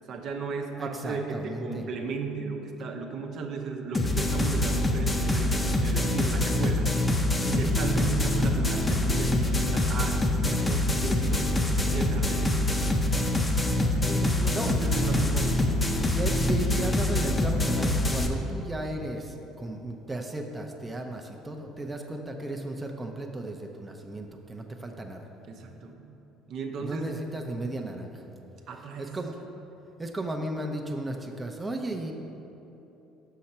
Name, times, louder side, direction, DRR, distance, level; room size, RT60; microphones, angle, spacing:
voice 1, 0.1-6.9 7.6-11.5 11.9-12.6 13.9-15.7 25.5-26.1 26.5-27.1 28.7-29.2, right 4 dB, 60° right, 2 dB, 0.8 m, -35 dB
voice 2, 0.8-1.8 7.4-7.8 14.5-14.7 16.1-25.2 26.8-28.2 29.0-29.4 30.0-32.1, right 1 dB, 20° right, 2 dB, 0.7 m, -35 dB
sound 1, 3.9-18.3, left 1 dB, 20° left, 0.8 m, -25 dB
6.4 x 5.8 x 4.3 m, 3.0 s
hypercardioid pair, 65°, 0 cm